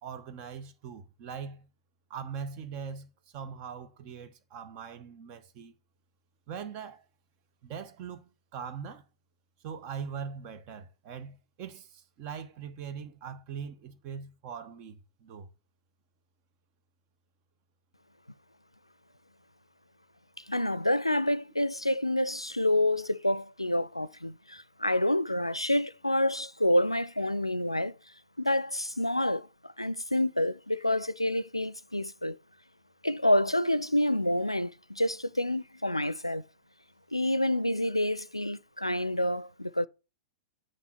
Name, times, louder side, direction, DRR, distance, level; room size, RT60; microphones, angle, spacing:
voice 1, 0.0-1.7 2.1-5.7 6.5-7.0 7.6-9.1 9.6-15.5, right 7 dB, 40° right, 1.1 m, -41 dB
voice 2, 20.5-28.0 28.4-32.4 33.0-36.4 37.1-39.9, left 1 dB, 90° left, 0.4 m, -28 dB
6.9 x 6.1 x 5.6 m
figure-of-eight pair, 100°, 3 cm